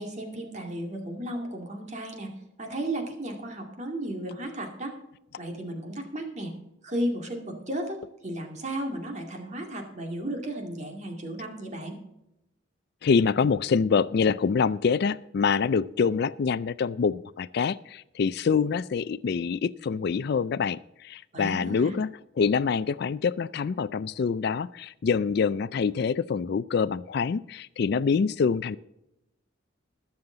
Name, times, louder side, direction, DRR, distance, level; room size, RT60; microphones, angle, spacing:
voice 1, 0.0-2.3 2.6-5.0 5.4-6.5 6.8-12.0 21.3-22.0, right 1 dB, 35° right, 3 dB, 2.2 m, -34 dB
voice 2, 13.0-28.8, left 5 dB, 55° left, 17 dB, 0.3 m, -26 dB
20.5 x 7.1 x 3.9 m, 0.87 s
head